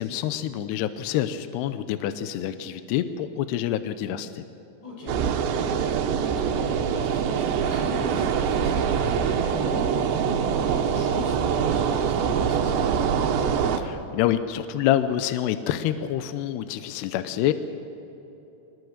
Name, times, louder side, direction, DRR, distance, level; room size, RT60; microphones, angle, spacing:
voice 1, 0.0-4.4 13.8-17.5, left 11 dB, 80° left, 11 dB, 2.5 m, -27 dB
voice 2, 4.8-5.2 5.5-5.7 6.2-13.2, left 1 dB, 60° left, -3 dB, 8.5 m, -38 dB
sound 1, 5.1-13.8, right 7 dB, 75° right, 3.2 m, -24 dB
23.5 x 20.5 x 6.6 m, 3.0 s
omnidirectional pair, 5.5 m